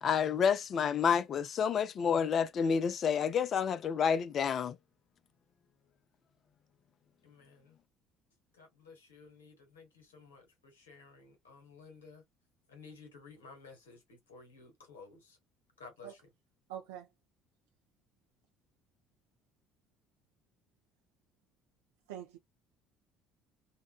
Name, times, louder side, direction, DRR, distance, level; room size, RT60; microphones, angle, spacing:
voice 1, 0.0-4.8, left 7 dB, 50° left, 0.4 m, -29 dB
voice 2, 7.2-7.8 8.5-12.2 12.7-15.4 15.8-16.2, left 4 dB, 90° left, 1.1 m, -54 dB
voice 3, 16.7-17.1 22.1-22.4, right 11 dB, 80° right, 0.4 m, -43 dB
2.8 x 2.1 x 2.3 m
hypercardioid pair, 60°, 0 cm